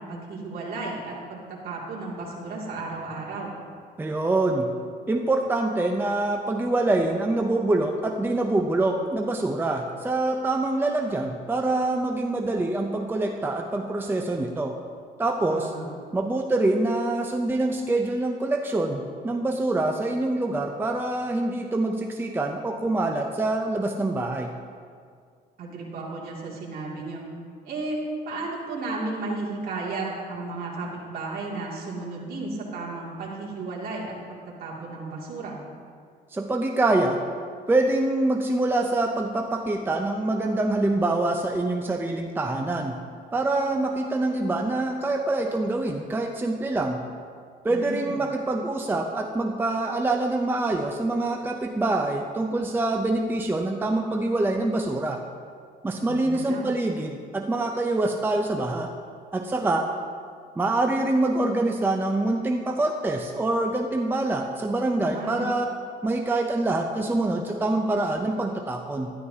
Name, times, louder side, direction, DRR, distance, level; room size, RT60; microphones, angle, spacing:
voice 1, 0.0-3.5 15.5-15.9 25.6-27.2 27.6-34.2 34.6-35.6 47.7-48.2 56.0-56.7 65.0-65.5, right 3 dB, 60° right, -4 dB, 2.5 m, -34 dB
voice 2, 4.0-4.7 5.1-14.8 15.2-15.7 16.1-24.5 36.3-37.2 37.7-43.0 43.3-47.0 47.6-55.2 55.8-58.9 59.3-59.9 60.6-65.7 66.0-69.1, right 2 dB, 10° right, 3 dB, 0.6 m, -25 dB
12.5 x 11.0 x 2.8 m, 2.1 s
cardioid pair, 110°, 17 cm